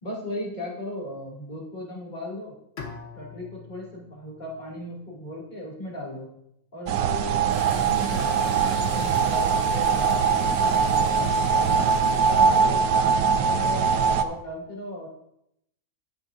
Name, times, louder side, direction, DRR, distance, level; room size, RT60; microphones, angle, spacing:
voice 1, 0.0-2.5 3.1-6.3 6.7-12.8 13.4-15.1, left 1 dB, 30° left, -4 dB, 2.6 m, -37 dB
Bowed string instrument, 2.8-5.8, left 5 dB, 50° left, 1.2 m, -44 dB
sound 1, 6.9-14.2, right 6 dB, 90° right, 1.1 m, -22 dB
Frying (food), 7.5-12.6, equal, 35° right, 3.1 m, -41 dB
16.0 x 6.1 x 2.6 m, 0.78 s
omnidirectional pair, 1.5 m